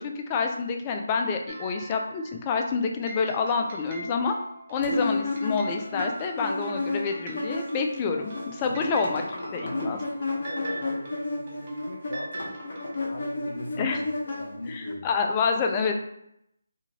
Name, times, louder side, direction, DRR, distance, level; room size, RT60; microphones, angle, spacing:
voice 1, 0.0-4.3 4.7-9.2 9.5-10.0 13.8-14.0 14.7-16.0, left 5 dB, 20° left, 3 dB, 0.3 m, -28 dB
sound 1, 1.5-2.4 3.0-13.0, right 2 dB, 35° right, 0.6 m, -43 dB
sound 2, 4.8-8.0 8.2-14.9, left 2 dB, 50° left, 0.9 m, -32 dB
voice 2, 9.1-12.5 12.9-15.1, left 1 dB, 85° left, -1 dB, 0.8 m, -39 dB
2.7 x 2.6 x 2.7 m, 0.78 s
figure-of-eight pair, 160°, 0 cm